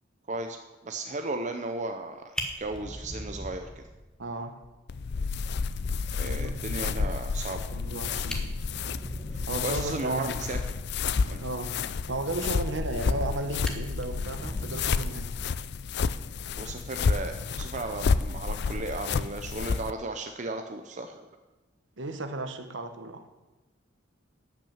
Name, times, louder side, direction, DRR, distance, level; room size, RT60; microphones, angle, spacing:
voice 1, 0.8-2.2 2.6-3.7 6.1-7.6 9.3-10.6 11.3-11.4 16.5-21.3, right 2 dB, 40° right, 6 dB, 0.7 m, -35 dB
Fire, 2.0-2.1 2.3-4.3 4.6-4.7 5.1-5.2 5.5-5.6 7.8-7.9 8.2-9.9 12.7-13.3 13.6-15.8 17.1-17.3, equal, 5° left, 1.4 m, -40 dB
voice 2, 4.2-4.6 6.2-7.1 7.7-8.5 9.5-10.3 11.4-15.3 22.0-23.4, right 2 dB, 70° right, 8 dB, 1.2 m, -35 dB
sound 1, 4.9-19.9, left 5 dB, 60° left, 0.4 m, -30 dB
12.0 x 6.1 x 8.7 m, 1.2 s
head